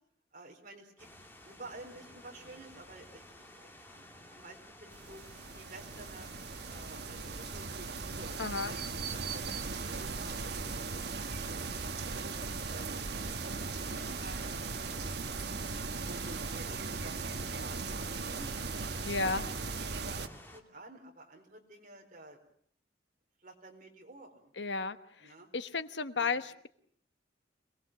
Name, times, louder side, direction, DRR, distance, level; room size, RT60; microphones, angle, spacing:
voice 1, 0.3-1.1 1.4-5.2 5.6-6.3 6.7-8.3 8.6-12.1 12.7-13.0 13.4-14.5 14.8-15.3 16.1-18.5 18.9-22.4 23.4-24.5 25.2-25.5 26.2-26.5, right 2 dB, 45° right, 3 dB, 4.5 m, -52 dB
sound 1, 1.0-20.6, left 1 dB, 10° left, 2.5 m, -54 dB
sound 2, 4.9-20.3, right 4 dB, 60° right, 1.2 m, -38 dB
voice 2, 8.4-8.7 19.0-19.5 24.6-25.0 25.5-26.7, left 4 dB, 80° left, 11 dB, 1.2 m, -33 dB
26.5 x 19.5 x 7.6 m, 0.63 s
head